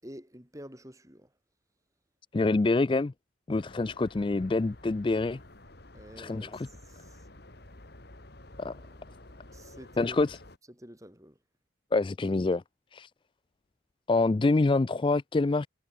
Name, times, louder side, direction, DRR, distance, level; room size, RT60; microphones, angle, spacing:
voice 1, 0.0-1.3 5.9-6.6 9.5-10.2 10.8-11.3, equal, 15° right, 7.5 m, -47 dB
voice 2, 2.3-3.1 3.5-5.4 6.2-6.7 8.6-8.7 10.0-10.4 11.9-12.6 12.9-13.1 14.1-15.7, left 3 dB, 25° left, 0.3 m, -26 dB
sound 1, 3.5-10.6, left 1 dB, 50° left, 2.5 m, -51 dB
head